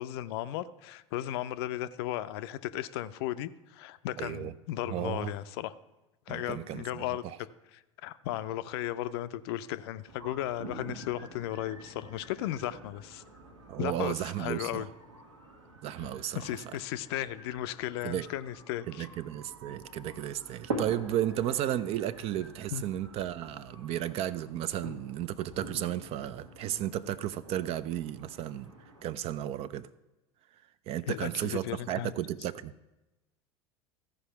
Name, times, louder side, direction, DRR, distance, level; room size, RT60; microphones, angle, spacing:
voice 1, 0.0-5.7 6.3-7.2 7.7-13.2 13.8-14.9 16.3-19.1 22.7-22.8 31.1-32.1, left 13 dB, 55° left, 13 dB, 0.5 m, -35 dB
voice 2, 4.2-4.5 4.9-5.3 6.3-7.4 13.7-14.9 15.8-16.4 16.7-16.8 18.0-18.3 18.9-28.7 29.0-29.9 30.9-32.7, right 12 dB, 40° right, 16 dB, 0.4 m, -34 dB
sound 1, 10.1-29.0, right 2 dB, 75° right, 1.5 m, -46 dB
14.5 x 4.8 x 5.8 m, 1.0 s
figure-of-eight pair, 75°, 16 cm